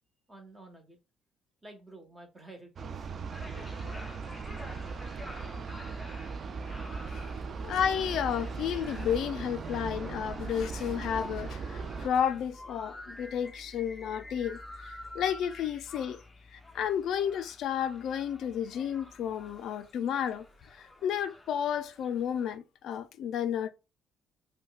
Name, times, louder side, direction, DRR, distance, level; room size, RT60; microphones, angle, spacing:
voice 1, 0.3-1.0 1.6-3.1 3.5-4.2, right 2 dB, 15° right, 1.1 m, -51 dB
sound 1, 2.8-12.1, right 5 dB, 45° right, 0.3 m, -38 dB
sound 2, 3.3-22.6, left 1 dB, 15° left, 0.6 m, -49 dB
voice 2, 7.6-16.2 16.5-23.7, left 8 dB, 70° left, 0.3 m, -32 dB
5.2 x 2.2 x 2.3 m
cardioid pair, 90°, 0 cm